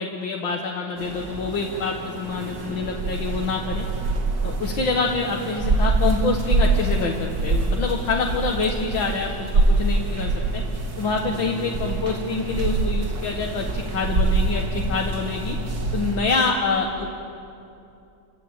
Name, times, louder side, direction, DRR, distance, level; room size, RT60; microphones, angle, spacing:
voice 1, 0.0-3.8 4.4-10.6 11.0-15.6 15.9-17.1, left 4 dB, 65° left, 1 dB, 2.1 m, -26 dB
sound 1, 1.0-16.2, right 2 dB, 50° right, 2.3 m, -25 dB
29.0 x 15.0 x 8.8 m, 2.7 s
omnidirectional pair, 2.3 m